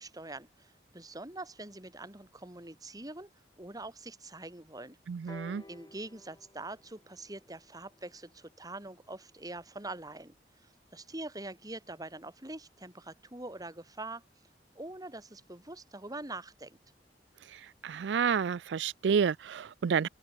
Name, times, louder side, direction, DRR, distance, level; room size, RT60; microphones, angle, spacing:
voice 1, 0.0-3.3 3.6-5.0 5.7-10.3 10.6-14.2 14.7-16.8, right 2 dB, 20° right, 3.8 m, -44 dB
voice 2, 5.1-5.6 17.8-20.1, right 6 dB, 85° right, 0.4 m, -29 dB
sound 1, 5.3-9.1 10.0-10.1, left 1 dB, 25° left, 1.7 m, -54 dB
open air
head